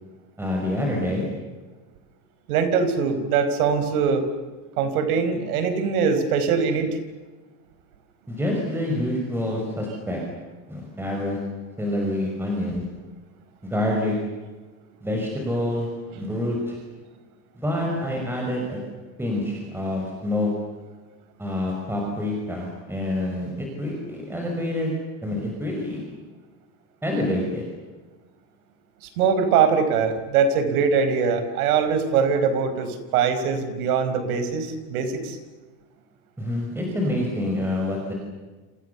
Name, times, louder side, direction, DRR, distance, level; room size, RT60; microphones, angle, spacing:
voice 1, 0.4-1.2 8.3-10.2 10.7-11.4 11.8-12.8 13.6-14.2 15.0-15.9 16.2-16.8 17.6-18.8 19.2-20.5 21.4-24.9 25.2-26.0 27.0-27.6 36.4-38.1, left 1 dB, 5° right, -1 dB, 5.6 m, -27 dB
voice 2, 2.5-4.2 4.8-7.0 29.0-35.4, right 6 dB, 85° right, 10 dB, 4.9 m, -22 dB
29.5 x 27.0 x 7.0 m, 1.3 s
supercardioid pair, 155°, 43 cm